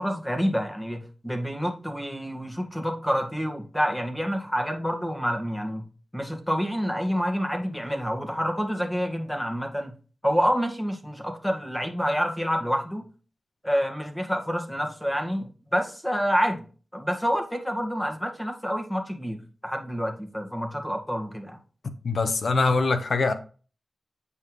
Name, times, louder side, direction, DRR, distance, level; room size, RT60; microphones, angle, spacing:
voice 1, 0.0-5.8 6.1-9.9 10.2-13.0 13.6-16.6 16.9-19.4 19.6-21.6, equal, 10° left, 1.8 m, -28 dB
voice 2, 22.0-23.3, left 3 dB, 75° left, 0.9 m, -23 dB
8.2 x 5.6 x 3.2 m
cardioid pair, 45°, 0 cm